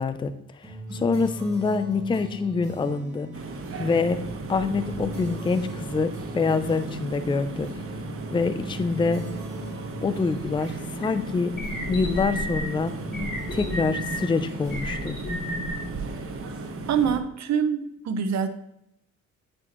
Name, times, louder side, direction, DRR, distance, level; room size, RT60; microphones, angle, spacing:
voice 1, 0.0-3.3 3.8-4.2 4.5-7.7 8.3-9.2 10.0-11.5 11.9-12.9 13.5-15.2, left 4 dB, 15° left, 10 dB, 0.5 m, -26 dB
sound 1, 0.6-16.5, right 2 dB, 10° right, 2.3 m, -40 dB
sound 2, 3.3-17.2, right 3 dB, 45° right, 1.1 m, -36 dB
sound 3, 11.0-11.1 11.5-12.6 13.1-14.2 14.7-15.7, left 1 dB, 30° left, 2.2 m, -31 dB
voice 2, 16.9-18.5, right 7 dB, 65° right, 9 dB, 0.9 m, -25 dB
8.9 x 4.3 x 3.0 m, 0.78 s
cardioid pair, 90°, 30 cm